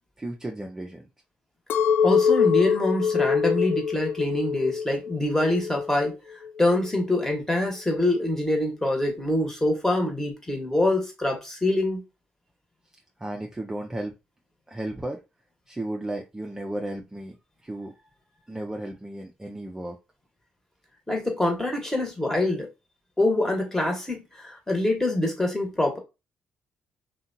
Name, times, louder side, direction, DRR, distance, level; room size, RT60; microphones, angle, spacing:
voice 1, 0.2-1.1 13.2-14.1 14.7-15.2 15.7-17.4 17.6-18.1 18.5-20.0, right 1 dB, 15° right, 0.4 m, -34 dB
Chink clink, 1.7-6.0 6.4-7.0, left 6 dB, 65° left, 0.3 m, -24 dB
voice 2, 2.0-6.2 6.6-12.0 21.1-22.7 23.2-26.0, left 1 dB, 10° left, 1.1 m, -25 dB
2.7 x 2.2 x 2.6 m
supercardioid pair, 65°, 4 cm